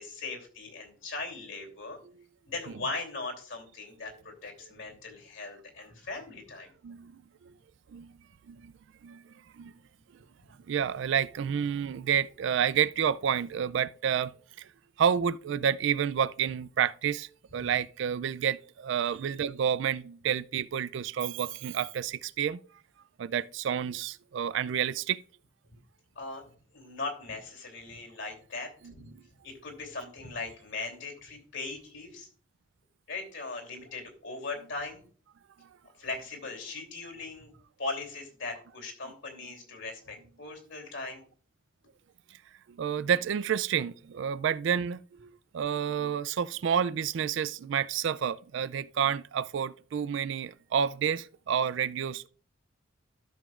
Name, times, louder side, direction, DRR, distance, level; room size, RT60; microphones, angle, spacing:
voice 1, 0.0-2.0 2.5-6.7 10.4-10.5 17.5-17.7 19.1-19.2 26.1-26.4 26.7-29.1 29.4-32.3 33.1-35.0 36.0-37.5 37.8-41.2, left 3 dB, 60° left, 2.9 m, -39 dB
voice 2, 6.8-7.5 7.9-8.1 8.5-8.7 9.0-9.2 9.6-9.7 10.7-14.3 14.6-14.7 15.0-22.6 23.2-25.2 42.8-52.3, right 8 dB, 60° right, 0.3 m, -29 dB
13.0 x 7.0 x 2.4 m
head